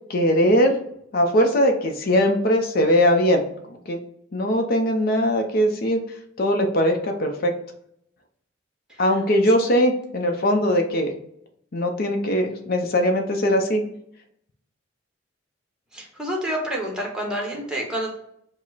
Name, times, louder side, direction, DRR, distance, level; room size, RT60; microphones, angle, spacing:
voice 1, 0.1-0.8 1.1-3.4 3.9-4.0 4.3-6.0 6.4-7.5 9.0-11.1 11.7-13.8, equal, 50° left, 4 dB, 0.6 m, -20 dB
voice 2, 15.9-18.2, equal, 5° right, -1 dB, 0.9 m, -28 dB
5.2 x 2.0 x 3.9 m, 0.73 s
head